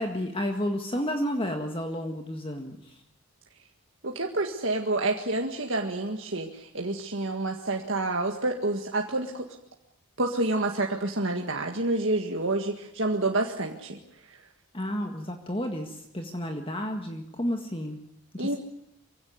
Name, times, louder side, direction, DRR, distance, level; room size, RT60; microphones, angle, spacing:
voice 1, 0.0-3.0 14.7-18.0 18.3-18.6, equal, 25° left, 4 dB, 1.7 m, -31 dB
voice 2, 4.0-9.5 10.2-14.0 18.4-18.6, right 2 dB, 60° right, 1 dB, 1.9 m, -28 dB
24.0 x 16.5 x 9.5 m, 0.81 s
head